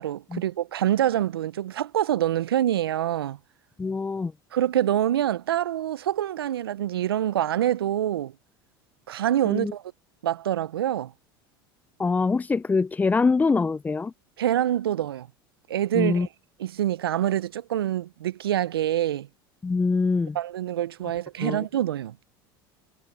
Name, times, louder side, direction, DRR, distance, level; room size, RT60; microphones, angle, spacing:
voice 1, 0.0-3.4 4.5-8.3 9.1-9.8 10.2-11.1 14.4-15.3 15.7-16.3 16.6-19.3 20.3-22.2, right 11 dB, 90° right, 0.5 m, -26 dB
voice 2, 3.8-4.3 9.5-9.7 12.0-14.1 15.9-16.3 19.6-20.4 21.4-21.6, left 4 dB, 15° left, 0.4 m, -24 dB
hypercardioid pair, 85°, 12 cm